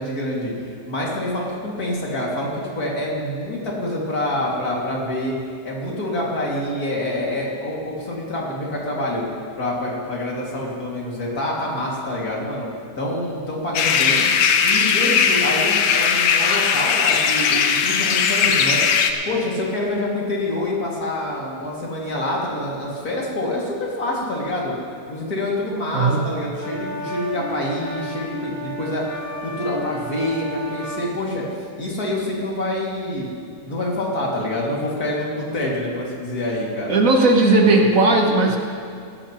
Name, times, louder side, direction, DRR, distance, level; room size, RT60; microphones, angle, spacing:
voice 1, 0.0-5.4 5.6-9.2 9.6-12.7 13.0-14.2 14.6-18.8 19.3-24.7 25.1-29.0 29.4-31.4 31.8-33.3 33.6-37.0, left 1 dB, 65° left, -4 dB, 2.9 m, -26 dB
sound 1, 13.7-19.1, left 6 dB, 90° left, 1.4 m, -18 dB
voice 2, 25.9-26.3 36.9-38.6, right 2 dB, 55° right, 2 dB, 1.4 m, -16 dB
sound 2, 26.6-31.1, right 1 dB, 10° right, 1.2 m, -32 dB
16.5 x 14.0 x 3.0 m, 2.4 s
omnidirectional pair, 1.8 m